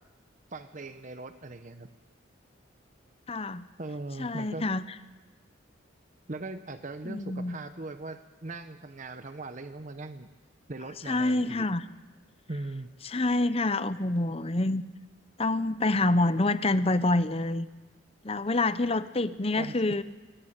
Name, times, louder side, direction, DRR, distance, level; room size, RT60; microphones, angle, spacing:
voice 1, 0.5-1.9 3.8-4.7 6.3-10.3 10.7-11.7 12.5-12.9 19.6-20.0, right 2 dB, 40° right, 9 dB, 0.9 m, -40 dB
voice 2, 3.3-3.6 4.2-4.8 7.0-7.6 11.1-11.8 13.0-14.8 15.4-17.7 18.2-20.0, left 2 dB, 30° left, 13 dB, 0.8 m, -27 dB
23.0 x 18.0 x 9.0 m, 1.2 s
head